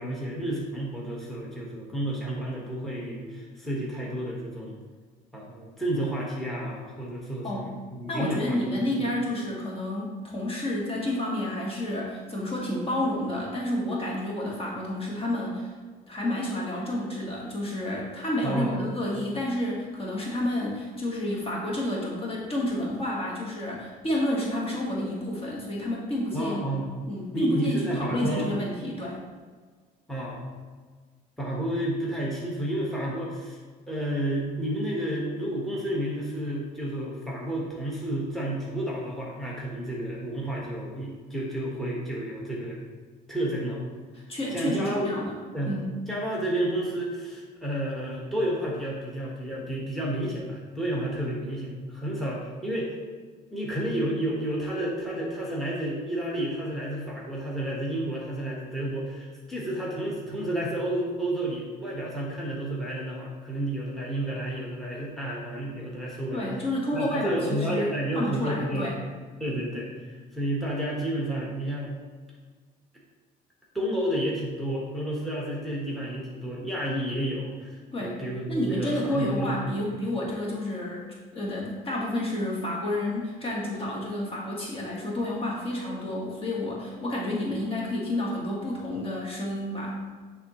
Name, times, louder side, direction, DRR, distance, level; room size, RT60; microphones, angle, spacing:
voice 1, 0.0-4.8 5.3-8.6 9.0-9.1 18.4-18.8 26.3-26.9 27.3-28.5 30.1-30.4 31.4-33.6 33.9-42.8 43.3-43.8 44.5-45.2 45.5-45.7 46.1-52.9 53.5-66.5 66.9-68.9 69.4-71.9 73.7-79.8, right 1 dB, ahead, -4 dB, 1.4 m, -31 dB
voice 2, 8.1-15.7 16.1-26.8 27.1-29.2 44.3-45.4 45.7-45.9 66.3-69.0 77.9-78.2 78.5-90.1, left 1 dB, 35° left, -3 dB, 1.5 m, -30 dB
9.2 x 3.5 x 3.0 m, 1.5 s
cardioid pair, 110°, 17 cm